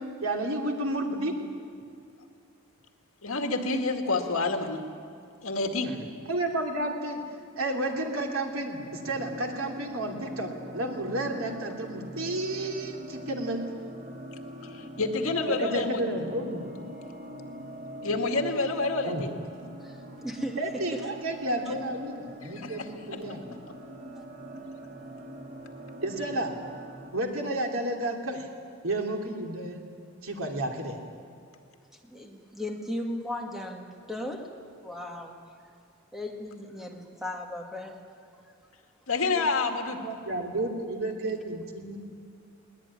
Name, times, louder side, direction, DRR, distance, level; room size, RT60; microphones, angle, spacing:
voice 1, 0.2-1.3 5.8-6.0 6.3-7.2 7.6-13.6 15.5-16.7 19.1-19.2 20.6-23.4 26.0-26.5 27.1-28.5 28.8-29.8 30.2-31.0 39.3-39.4 40.0-42.0, right 1 dB, 75° right, 2 dB, 3.0 m, -31 dB
voice 2, 3.2-4.8 5.4-5.9 14.7-16.0 18.0-19.3 22.4-22.9 23.7-23.8 39.1-40.0, left 3 dB, 75° left, 4 dB, 2.1 m, -28 dB
sound 1, 8.8-27.1, equal, 40° right, 2.9 m, -43 dB
voice 3, 19.8-20.6 20.9-21.0 21.7-21.8 24.2-24.3 32.0-34.5 34.8-35.4 36.1-38.2, left 1 dB, ahead, 1 dB, 2.2 m, -37 dB
21.0 x 19.0 x 9.8 m, 2.3 s
head